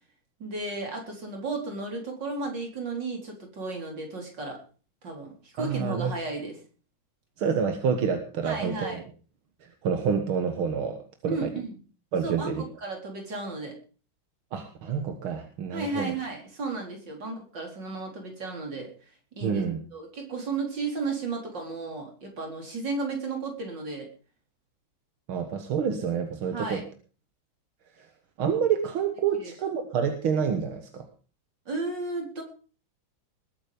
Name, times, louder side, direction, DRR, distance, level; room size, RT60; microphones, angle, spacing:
voice 1, 0.4-4.6 5.0-6.5 8.4-9.0 11.2-11.8 12.2-13.7 15.7-18.9 19.4-19.6 19.9-24.1 26.5-26.8 29.3-29.5 31.7-32.4, right 3 dB, 60° right, 1 dB, 4.9 m, -34 dB
voice 2, 5.6-6.1 7.4-9.0 9.8-11.5 12.1-12.6 14.5-16.1 19.4-19.8 25.3-26.8 28.4-31.1, right 7 dB, 85° right, 6 dB, 2.3 m, -28 dB
20.5 x 9.0 x 5.2 m, 0.39 s
omnidirectional pair, 2.2 m